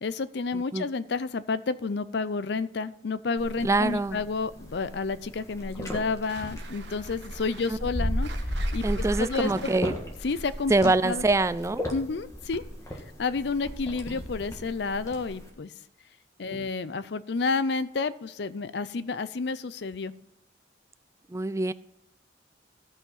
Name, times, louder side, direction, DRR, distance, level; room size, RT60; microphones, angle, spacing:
voice 1, 0.0-8.3 8.7-9.7 10.2-11.2 11.9-12.6 13.2-15.7 16.4-20.1, left 4 dB, 65° left, 15 dB, 0.5 m, -30 dB
voice 2, 0.5-0.9 3.6-4.2 7.7-7.8 8.8-10.0 10.7-11.9 16.5-16.6 21.3-21.7, right 2 dB, 15° right, 15 dB, 0.3 m, -25 dB
sound 1, 3.4-15.5, equal, 15° left, 1.7 m, -35 dB
sound 2, 6.2-11.9, right 5 dB, 70° right, 1.1 m, -47 dB
14.5 x 5.8 x 5.6 m, 0.79 s
head